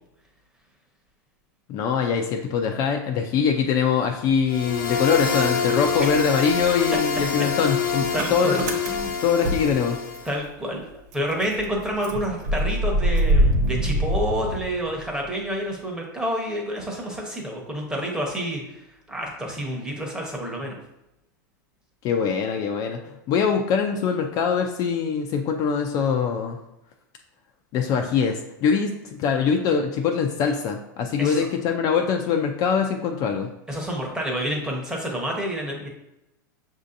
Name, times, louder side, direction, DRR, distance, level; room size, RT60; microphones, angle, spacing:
voice 1, 1.7-10.0 22.0-23.0 23.3-26.6 27.7-33.5, left 6 dB, 35° left, 3 dB, 0.4 m, -23 dB
Motor vehicle (road) / Engine starting, 4.3-5.5 5.8-10.5 10.8-10.9 11.1-15.2, right 1 dB, 60° right, 0.6 m, -26 dB
sound 1, 4.5-10.3, left 5 dB, 90° left, 0.6 m, -26 dB
voice 2, 8.1-8.6 10.2-20.8 31.2-31.5 33.7-35.9, equal, 5° right, -1 dB, 0.9 m, -29 dB
6.1 x 2.7 x 2.5 m, 0.89 s
supercardioid pair, 135°, 11 cm